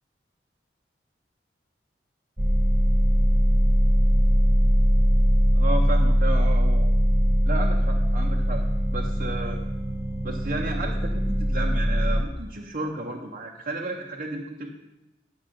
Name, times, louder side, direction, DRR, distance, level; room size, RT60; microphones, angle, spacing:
sound 1, 2.4-12.2, equal, 15° right, 0.7 m, -21 dB
voice 1, 5.5-6.9 7.5-8.6 8.9-9.6 10.2-14.7, right 2 dB, 50° right, -2 dB, 0.9 m, -32 dB
10.0 x 6.4 x 6.4 m, 0.98 s
head